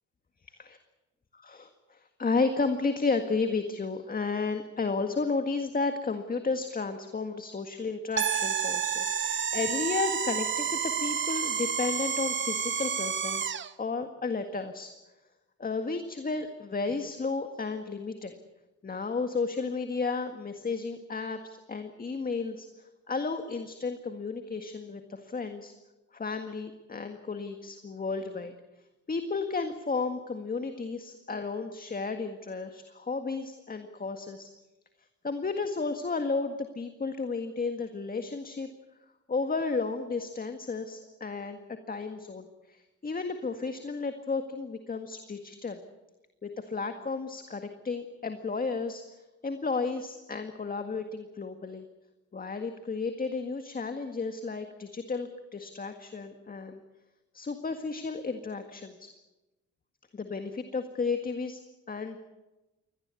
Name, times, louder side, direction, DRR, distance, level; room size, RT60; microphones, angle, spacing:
voice 1, 1.4-14.9 15.6-18.4 18.8-25.7 26.1-28.5 29.1-34.5 35.2-38.7 39.3-45.8 46.4-49.0 49.4-51.9 52.3-56.8 57.3-59.1 60.1-61.6 61.9-62.2, left 4 dB, 30° left, 7 dB, 1.8 m, -33 dB
sound 1, 8.2-13.7, right 7 dB, 40° right, 1.0 m, -30 dB
23.0 x 18.5 x 8.4 m, 1.1 s
cardioid pair, 90°, 30 cm